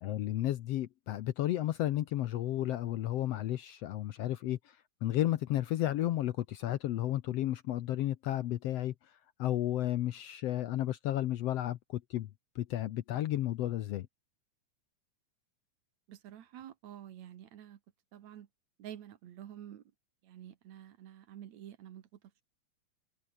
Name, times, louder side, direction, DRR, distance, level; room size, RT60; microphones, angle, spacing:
voice 1, 0.0-4.8 5.0-8.9 9.4-12.3 12.6-14.1, left 13 dB, 70° left, 1.6 m, -32 dB
voice 2, 16.1-17.8 18.1-18.5 18.8-19.8 20.2-22.1, right 11 dB, 70° right, 2.6 m, -49 dB
omnidirectional pair, 3.5 m